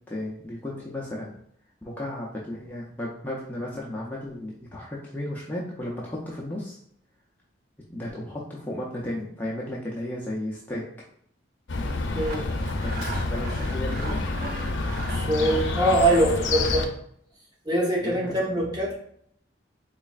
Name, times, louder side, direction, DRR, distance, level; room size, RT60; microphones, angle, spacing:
voice 1, 0.1-1.3 1.8-6.8 7.9-10.8 12.6-14.2 18.0-18.2, left 1 dB, 10° left, -5 dB, 0.5 m, -34 dB
Chirp tweet, 11.7-16.9, left 3 dB, 80° left, 0.5 m, -28 dB
Sawing, 12.2-17.0, right 3 dB, 55° right, 0.4 m, -40 dB
voice 2, 15.1-16.9 17.7-18.9, right 1 dB, 20° right, -3 dB, 0.8 m, -23 dB
4.0 x 3.1 x 2.3 m, 0.68 s
head